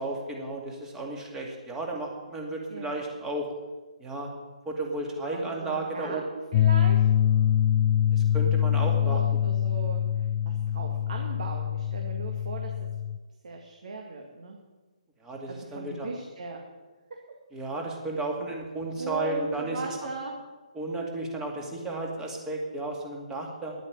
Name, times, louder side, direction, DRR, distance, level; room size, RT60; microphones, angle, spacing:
voice 1, 0.0-3.5 4.0-4.3 4.7-6.2 8.1-9.2 15.2-16.1 17.5-20.0 20.7-23.8, right 2 dB, 10° right, 0 dB, 2.2 m, -33 dB
voice 2, 5.3-7.1 8.7-12.9 13.4-14.6 15.5-16.6 19.0-20.4, right 2 dB, 65° right, 2 dB, 2.0 m, -38 dB
sound 1, 6.5-13.2, left 10 dB, 30° left, 0.6 m, -24 dB
10.5 x 8.0 x 8.7 m, 1.2 s
hypercardioid pair, 150°, 4 cm